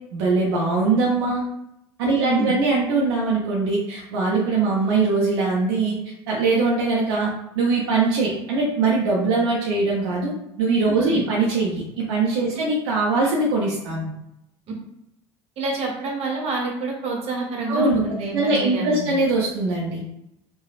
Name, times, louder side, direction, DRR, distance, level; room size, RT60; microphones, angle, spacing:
voice 1, 0.1-1.4 2.0-5.9 6.3-7.3 7.6-10.3 10.6-14.1 17.7-18.0 18.3-20.0, right 3 dB, 75° right, -4 dB, 0.6 m, -21 dB
voice 2, 2.2-2.5 15.6-19.1, right 3 dB, 50° right, -1 dB, 0.9 m, -27 dB
3.2 x 2.2 x 2.3 m, 0.82 s
hypercardioid pair, 70°, 14 cm